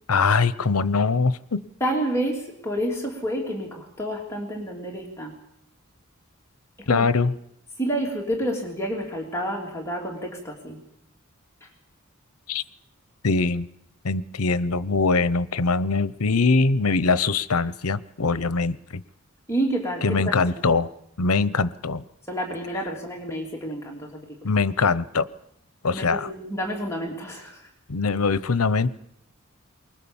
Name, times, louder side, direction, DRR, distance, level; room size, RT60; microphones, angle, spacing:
voice 1, 0.1-1.6 6.9-7.3 12.5-12.6 13.2-13.7 14.0-19.0 20.0-20.9 21.2-22.0 24.4-25.3 25.8-26.3 27.9-28.9, left 4 dB, 85° left, 16 dB, 0.9 m, -22 dB
voice 2, 1.8-5.4 6.8-7.0 7.8-10.8 11.6-11.7 19.5-20.2 20.5-20.7 22.3-24.5 25.9-27.7, right 1 dB, 10° left, -1 dB, 3.2 m, -29 dB
24.0 x 20.5 x 7.2 m, 0.76 s
head